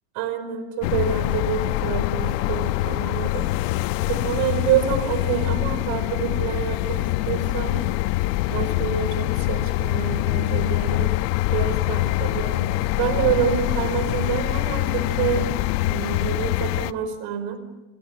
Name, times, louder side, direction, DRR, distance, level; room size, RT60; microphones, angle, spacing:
voice 1, 0.1-3.5 4.1-7.8 8.5-11.1 11.5-15.5 15.8-17.6, right 8 dB, 55° right, 10 dB, 5.2 m, -27 dB
sound 1, 0.8-16.9, left 17 dB, 80° left, 1.1 m, -24 dB
29.5 x 25.0 x 7.3 m, 1.1 s
cardioid pair, 165°, 48 cm